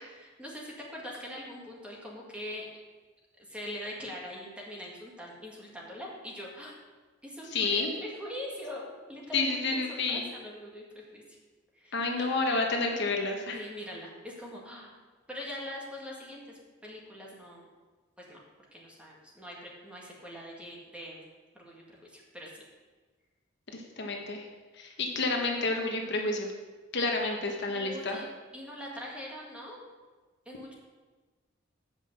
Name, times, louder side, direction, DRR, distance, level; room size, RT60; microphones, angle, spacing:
voice 1, 0.1-2.7 3.5-6.7 7.2-11.4 11.7-12.3 13.5-15.0 15.3-17.7 18.2-18.4 18.7-21.3 21.6-22.6 27.7-28.3 28.5-29.8 30.4-30.7, left 1 dB, 5° right, -3 dB, 1.6 m, -43 dB
voice 2, 7.5-7.9 9.3-10.3 11.9-13.6 23.7-24.5 24.8-26.5 26.9-28.2, left 3 dB, 60° left, 2 dB, 1.2 m, -30 dB
8.1 x 5.5 x 6.4 m, 1.3 s
head